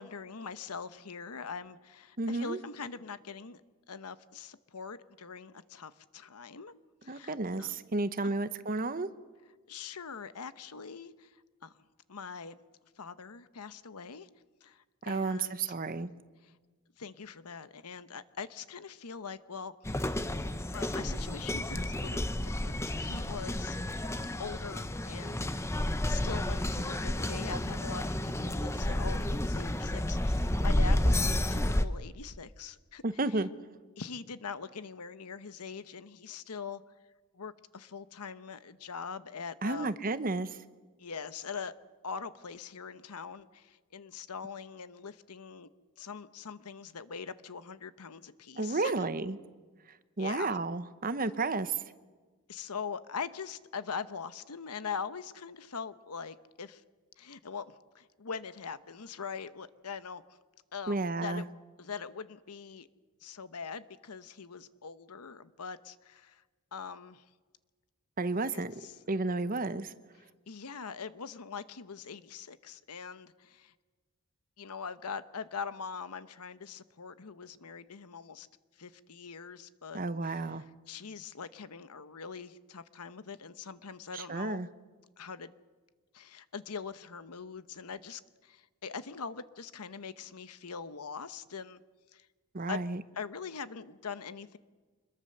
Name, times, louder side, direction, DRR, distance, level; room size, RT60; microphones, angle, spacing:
voice 1, 0.0-3.6 3.9-6.7 7.0-7.8 8.2-8.3 9.7-11.3 11.6-11.7 12.1-12.6 13.0-14.3 14.6-15.7 16.4-16.5 17.0-19.7 20.7-23.8 24.4-25.4 26.1-33.0 33.3-33.4 34.0-36.8 37.3-39.9 41.0-41.7 42.0-45.7 46.0-49.1 50.2-50.6 52.5-56.8 57.2-60.2 60.7-61.5 61.8-62.9 63.2-66.4 66.7-67.2 68.5-69.0 70.5-73.7 74.6-78.5 78.8-84.6 85.2-85.5 86.1-91.8 92.1-92.2 92.7-92.8 93.1-94.6, left 5 dB, 85° left, 13 dB, 1.0 m, -42 dB
voice 2, 2.2-2.6 7.1-9.1 15.0-16.1 33.0-33.5 39.6-40.5 48.6-49.4 50.2-51.7 60.9-61.4 68.2-68.7 69.1-69.9 79.9-80.6 84.1-84.7 92.5-93.0, right 3 dB, 40° right, 13 dB, 0.9 m, -32 dB
sound 1, 19.9-31.9, left 1 dB, 10° left, 0.7 m, -31 dB
25.5 x 21.5 x 6.7 m, 1.4 s
head